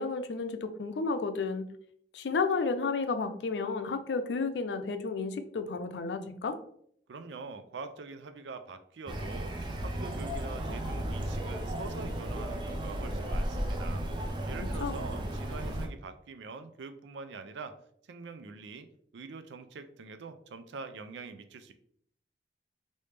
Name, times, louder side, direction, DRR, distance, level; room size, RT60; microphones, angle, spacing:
voice 1, 0.0-1.7 2.1-6.6 14.6-15.0, left 4 dB, 85° left, 9 dB, 0.4 m, -32 dB
voice 2, 7.1-17.8 18.1-18.9 19.1-21.7, right 4 dB, 90° right, 9 dB, 0.4 m, -44 dB
sound 1, 9.1-15.9, right 1 dB, 25° right, 0.4 m, -34 dB
3.2 x 2.7 x 3.3 m, 0.65 s
head